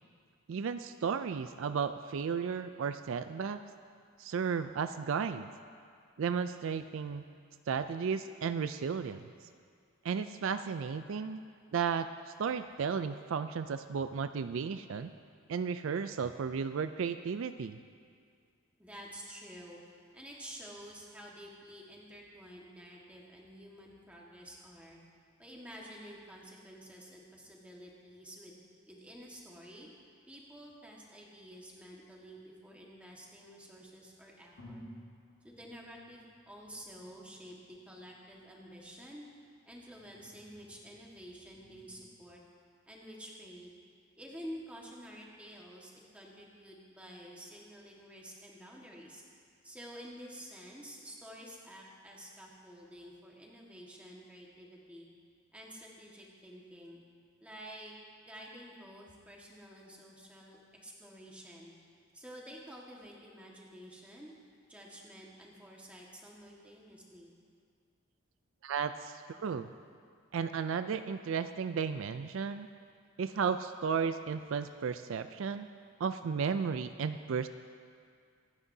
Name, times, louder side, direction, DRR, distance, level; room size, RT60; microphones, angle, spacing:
voice 1, 0.5-3.6 4.2-5.5 6.2-7.2 7.7-9.2 10.0-11.4 11.7-15.1 15.5-17.8 68.6-69.7 70.3-72.7 73.2-75.7 76.0-77.5, right 6 dB, 70° right, 10 dB, 0.4 m, -34 dB
voice 2, 18.8-19.8 20.1-25.0 25.4-28.6 28.9-29.9 30.3-34.8 35.4-39.2 39.7-42.4 42.9-43.7 44.2-49.2 49.6-55.1 55.5-57.0 57.4-57.9 58.3-61.7 62.1-64.3 64.7-67.3, equal, 5° right, -3 dB, 1.6 m, -50 dB
sound 1, 32.6-33.5 34.1-34.2 34.6-42.1, equal, 70° left, 1.6 m, -58 dB
25.0 x 9.7 x 2.7 m, 2.2 s
head